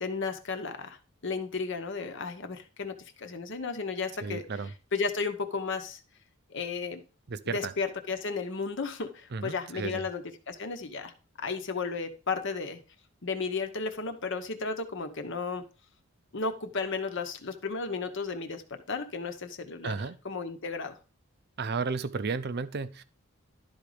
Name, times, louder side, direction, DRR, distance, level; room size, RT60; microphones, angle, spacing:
voice 1, 0.0-4.4 4.9-6.0 6.5-7.0 7.5-11.1 11.4-12.8 13.2-15.6 16.3-19.9 20.2-21.0, left 4 dB, 60° left, 7 dB, 1.0 m, -34 dB
voice 2, 4.2-4.7 7.3-7.7 9.3-10.0 19.8-20.2 21.6-23.0, right 4 dB, 50° right, 13 dB, 0.6 m, -33 dB
11.5 x 4.0 x 5.0 m, 0.35 s
head